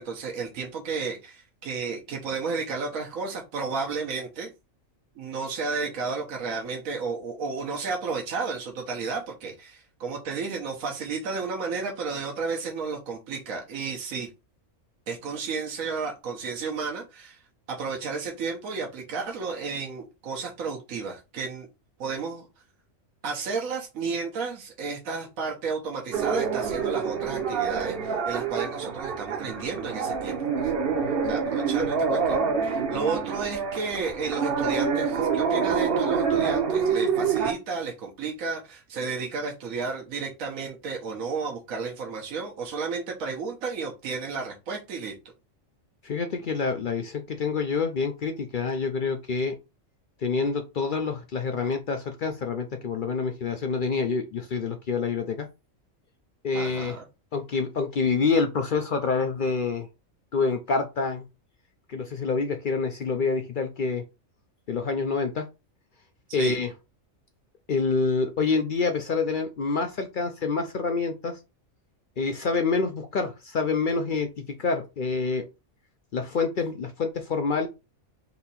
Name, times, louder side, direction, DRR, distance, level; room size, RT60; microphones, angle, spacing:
voice 1, 0.0-4.5 5.2-14.3 15.1-17.4 17.7-21.7 22.0-22.5 23.2-30.7 31.2-45.1 56.5-57.0 66.3-66.6, right 4 dB, 80° right, 1 dB, 1.3 m, -32 dB
sound 1, 26.1-37.5, right 6 dB, 50° right, 0.9 m, -26 dB
voice 2, 46.0-49.6 50.2-55.5 56.4-57.0 57.3-59.9 60.3-61.2 61.9-64.0 64.7-65.5 66.3-66.7 67.7-71.4 72.2-74.3 74.6-75.5 76.1-77.7, left 4 dB, 60° left, 6 dB, 0.5 m, -27 dB
4.2 x 2.7 x 4.1 m, 0.26 s
omnidirectional pair, 1.4 m